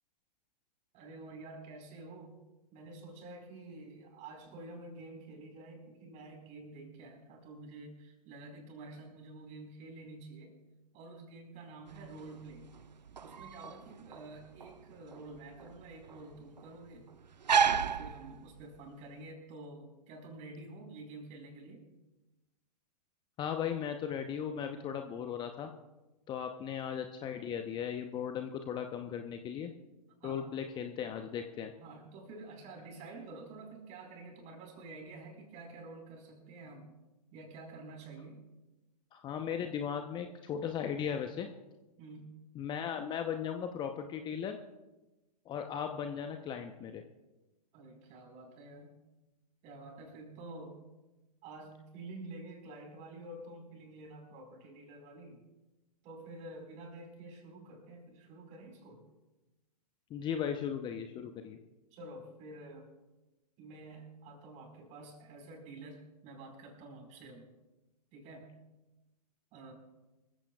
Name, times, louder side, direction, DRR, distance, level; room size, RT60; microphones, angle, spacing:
voice 1, 0.9-2.4 2.7-10.6 10.9-12.7 13.2-17.1 17.6-21.9 30.2-30.5 31.8-36.9 37.3-38.4 42.0-42.4 47.7-49.0 49.6-50.8 51.4-55.4 56.0-59.0 61.9-62.9 63.6-67.5 68.1-68.6 69.5-69.7, right 2 dB, 35° right, 3 dB, 4.8 m, -49 dB
sound 1, 11.9-18.8, right 7 dB, 85° right, 0.6 m, -34 dB
voice 2, 23.4-25.7 26.3-29.7 30.2-31.7 39.1-41.5 42.6-44.6 45.5-47.0 60.1-61.6, left 8 dB, 20° left, 6 dB, 0.8 m, -37 dB
25.0 x 15.5 x 2.4 m, 1.1 s
figure-of-eight pair, 115°, 21 cm